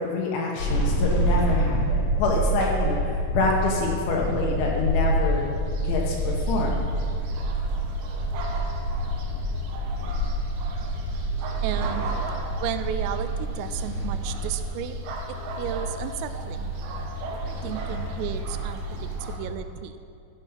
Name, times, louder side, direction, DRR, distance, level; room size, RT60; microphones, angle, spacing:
voice 1, 0.0-5.5 5.8-6.8, left 3 dB, 75° left, -2 dB, 3.4 m, -26 dB
sound 1, 0.6-19.5, right 1 dB, 50° left, 2.4 m, -28 dB
sound 2, 4.0-19.4, right 3 dB, 75° right, 2.4 m, -40 dB
voice 2, 11.6-12.1 12.6-15.0 15.3-16.7 17.3-20.0, right 10 dB, 90° right, 11 dB, 3.2 m, -34 dB
12.5 x 7.2 x 5.6 m, 2.4 s
omnidirectional pair, 5.7 m